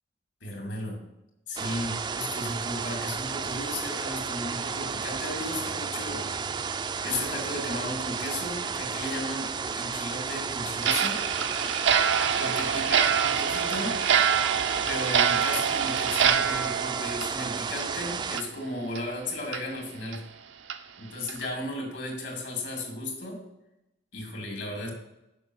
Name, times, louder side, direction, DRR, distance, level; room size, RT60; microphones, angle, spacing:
voice 1, 0.4-1.0 1.5-6.3 7.0-11.2 12.4-14.0 14.9-20.2 21.0-23.4 24.1-24.9, left 1 dB, 75° left, 1 dB, 2.5 m, -35 dB
sound 1, 1.6-18.4, right 5 dB, 25° right, 0.3 m, -33 dB
Clock, 10.8-18.0 18.3-18.5 18.9-19.0 19.5-19.6 20.1-20.2 20.7-20.8 21.3-21.5, right 8 dB, 85° right, 0.6 m, -26 dB
6.8 x 5.4 x 6.2 m, 0.90 s
head